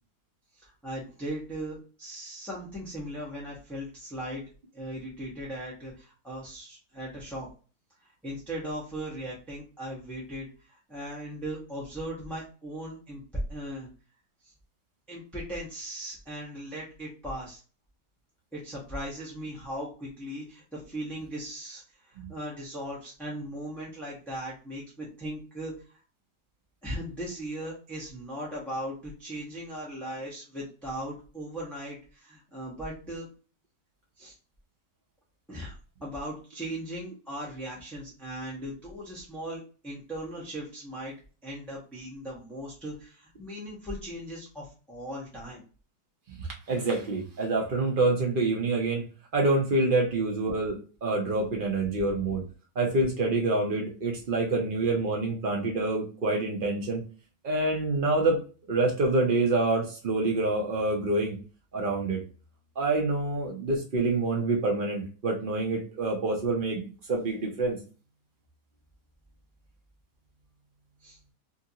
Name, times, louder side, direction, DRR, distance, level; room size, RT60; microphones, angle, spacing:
voice 1, 0.6-4.4 4.7-7.5 8.2-13.2 13.5-13.9 14.4-14.5 15.1-17.6 18.5-26.0 26.8-33.3 34.2-34.3 35.5-35.8 36.0-41.1 41.4-45.6 71.0-71.2, right 1 dB, ahead, -6 dB, 0.6 m, -38 dB
voice 2, 46.4-49.1 49.3-52.4 52.8-57.0 57.4-58.4 58.7-61.4 61.7-62.2 62.8-66.8 67.1-67.8, right 2 dB, 80° right, 0 dB, 0.4 m, -27 dB
2.8 x 2.6 x 2.7 m, 0.36 s
omnidirectional pair, 1.8 m